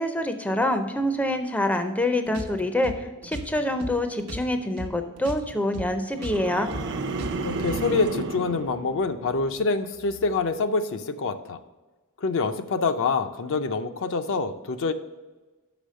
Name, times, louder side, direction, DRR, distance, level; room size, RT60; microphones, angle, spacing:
voice 1, 0.0-6.7, left 1 dB, 5° left, 7 dB, 0.5 m, -26 dB
sound 1, 2.3-4.9 5.2-8.1, equal, 85° right, 0.8 m, -38 dB
sound 2, 6.2-9.6 10.0-10.4, right 3 dB, 55° right, 0.6 m, -33 dB
voice 2, 7.4-11.6 12.2-14.9, left 4 dB, 60° left, 8 dB, 0.5 m, -26 dB
6.1 x 5.0 x 6.3 m, 1.2 s
head